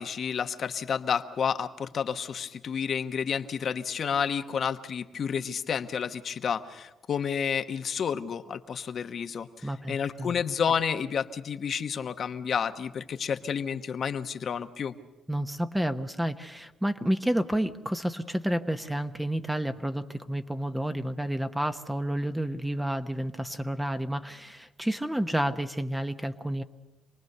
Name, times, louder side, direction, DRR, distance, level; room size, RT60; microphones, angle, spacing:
voice 1, 0.0-14.9, left 7 dB, 55° left, 9 dB, 1.1 m, -30 dB
voice 2, 9.6-10.3 15.3-26.6, right 1 dB, 5° right, 8 dB, 1.0 m, -30 dB
27.0 x 19.5 x 6.7 m, 1.1 s
cardioid pair, 90°, 0 cm